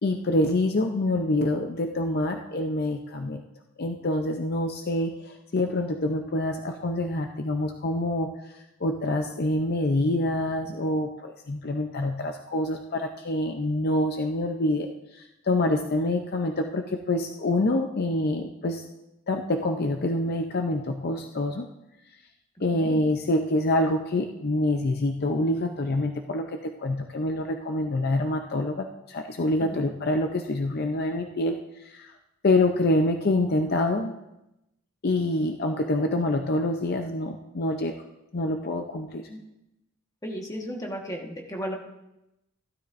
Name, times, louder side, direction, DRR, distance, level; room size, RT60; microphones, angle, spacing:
voice 1, 0.0-3.4 3.8-8.3 8.8-18.8 19.3-21.7 22.6-31.6 31.8-32.1 32.4-34.1 35.0-38.0 38.3-39.3, left 1 dB, 50° left, 4 dB, 0.6 m, -26 dB
voice 2, 40.2-41.8, equal, 15° left, 0 dB, 1.3 m, -34 dB
15.0 x 12.5 x 2.6 m, 0.91 s
head